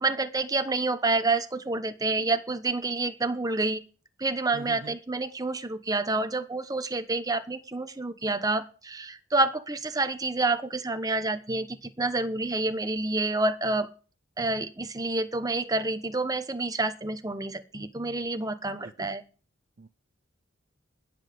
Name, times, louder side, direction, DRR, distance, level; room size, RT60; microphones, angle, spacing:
voice 1, 0.0-3.8 4.2-13.9 14.4-19.2, right 2 dB, 20° right, 9 dB, 0.9 m, -28 dB
voice 2, 4.5-4.9 18.8-18.9 19.8-19.9, right 3 dB, 45° right, 13 dB, 0.5 m, -42 dB
20.0 x 7.7 x 5.2 m, 0.38 s
head